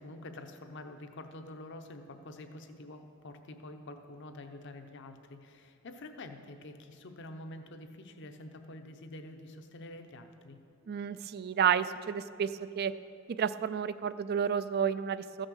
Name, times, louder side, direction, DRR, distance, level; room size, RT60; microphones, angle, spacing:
voice 1, 0.0-10.6, left 1 dB, 60° left, 7 dB, 0.8 m, -47 dB
voice 2, 10.9-12.5 12.8-12.9 13.4-15.5, right 8 dB, 50° right, 14 dB, 0.3 m, -30 dB
14.5 x 6.4 x 6.4 m, 2.5 s
head